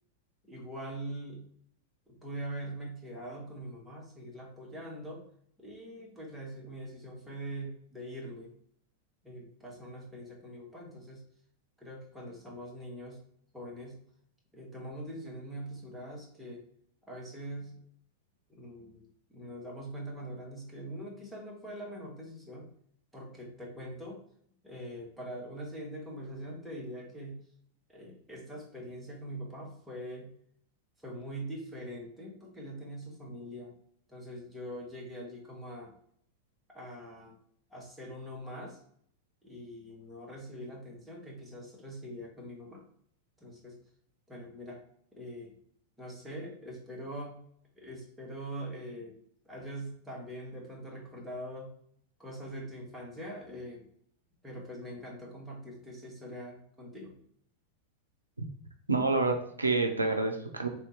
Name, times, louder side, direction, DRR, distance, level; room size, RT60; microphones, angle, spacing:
voice 1, 0.4-1.4 2.1-5.2 5.6-8.5 9.2-11.2 11.8-13.2 13.5-14.0 14.5-16.6 17.1-17.7 18.5-22.7 23.1-24.2 24.6-27.4 27.9-30.3 31.0-33.7 34.1-35.9 36.7-37.3 37.7-38.8 39.4-42.8 43.4-43.8 44.3-44.8 45.1-45.5 46.0-47.3 47.8-49.2 49.4-51.7 52.2-53.9 54.4-57.1, equal, 5° right, -3 dB, 1.0 m, -43 dB
voice 2, 58.9-60.7, right 3 dB, 80° right, 4 dB, 0.4 m, -28 dB
3.3 x 2.7 x 3.1 m, 0.66 s
figure-of-eight pair, 90°, 0 cm